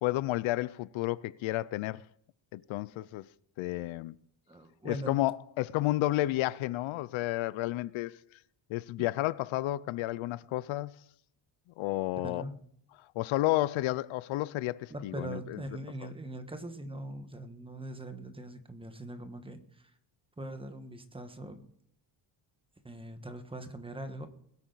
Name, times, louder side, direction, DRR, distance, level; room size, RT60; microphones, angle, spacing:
voice 1, 0.0-2.0 2.5-3.3 3.6-4.2 4.8-8.2 8.7-11.0 11.8-12.4 13.2-15.6 16.0-16.1, left 17 dB, 80° left, 0.6 m, -31 dB
voice 2, 4.5-5.2 12.2-12.5 14.9-19.9 20.4-21.6 22.8-24.3, right 1 dB, 10° right, 1.3 m, -41 dB
21.5 x 8.6 x 4.0 m
cardioid pair, 140°, 47 cm